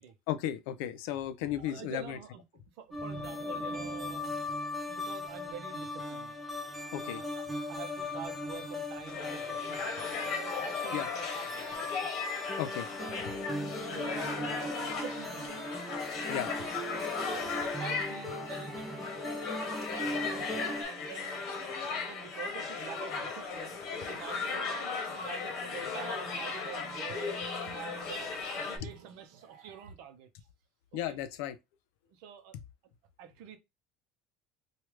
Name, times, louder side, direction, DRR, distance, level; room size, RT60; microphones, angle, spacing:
voice 1, 0.3-2.2 6.9-7.2 10.9-11.1 12.6-12.9 16.3-16.5 30.9-31.6, left 11 dB, 70° left, 0.5 m, -34 dB
voice 2, 1.6-2.4 2.7-4.6 4.9-6.3 7.0-12.1 13.0-13.2 13.5-15.7 16.3-16.8 17.4-19.1 19.5-21.5 21.9-23.8 24.1-24.7 25.1-27.3 27.7-30.3 31.1-31.2 32.1-32.6 33.2-33.6, right 8 dB, 60° right, 0.7 m, -47 dB
sound 1, 2.9-20.8, left 2 dB, ahead, 0.5 m, -38 dB
sound 2, 9.1-28.8, left 4 dB, 40° left, 1.0 m, -37 dB
sound 3, 23.7-29.9, right 6 dB, 80° right, 0.9 m, -53 dB
3.2 x 2.4 x 3.0 m
cardioid pair, 170°, 0 cm